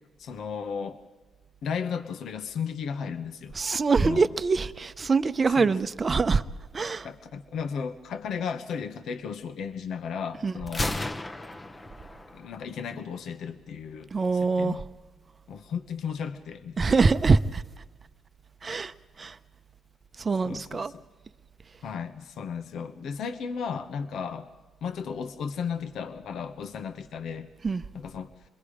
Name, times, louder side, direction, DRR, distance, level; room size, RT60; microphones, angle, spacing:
voice 1, 0.2-1.0 1.6-3.5 4.0-4.3 5.6-5.8 7.0-10.9 12.3-14.8 15.5-17.0 20.4-21.0 21.8-24.5 24.8-27.5 27.9-28.3, left 6 dB, 70° left, 1.1 m, -34 dB
voice 2, 3.5-6.4 6.7-7.1 10.4-10.5 14.1-14.8 16.8-17.6 18.6-18.9 19.2-19.4 20.2-20.9 27.6-27.8, right 4 dB, 35° right, 0.7 m, -24 dB
Gunshot gunfire, 10.7-12.6, left 1 dB, 20° left, 0.9 m, -33 dB
27.5 x 21.5 x 5.0 m
cardioid pair, 90°, 0 cm